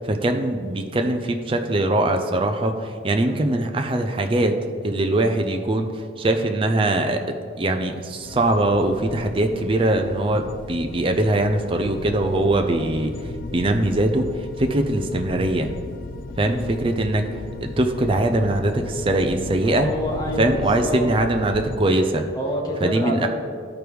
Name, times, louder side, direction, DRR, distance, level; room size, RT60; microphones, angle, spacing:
voice 1, 0.0-4.6 4.8-14.3 14.6-15.7 16.4-17.3 17.6-19.9 20.4-22.2 22.8-23.3, right 1 dB, 30° right, 5 dB, 0.4 m, -22 dB
sound 1, 8.2-21.8, left 3 dB, 50° left, 0.3 m, -36 dB
voice 2, 19.6-21.1 22.4-23.3, equal, 20° left, -2 dB, 1.1 m, -27 dB
13.0 x 4.6 x 3.4 m, 2.2 s
head